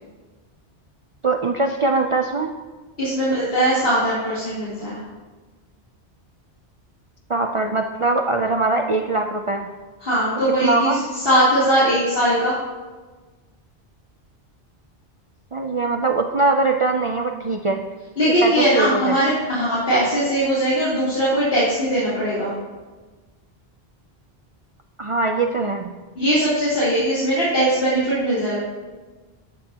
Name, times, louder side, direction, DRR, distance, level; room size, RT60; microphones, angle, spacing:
voice 1, 1.2-2.5 7.3-9.7 10.6-11.0 15.5-17.8 18.4-19.2 25.0-25.9, right 3 dB, 40° right, 3 dB, 0.5 m, -22 dB
voice 2, 3.0-5.0 10.0-12.5 18.2-22.5 26.1-28.6, right 1 dB, 60° left, -11 dB, 3.4 m, -20 dB
13.5 x 9.4 x 2.9 m, 1.3 s
omnidirectional pair, 1.1 m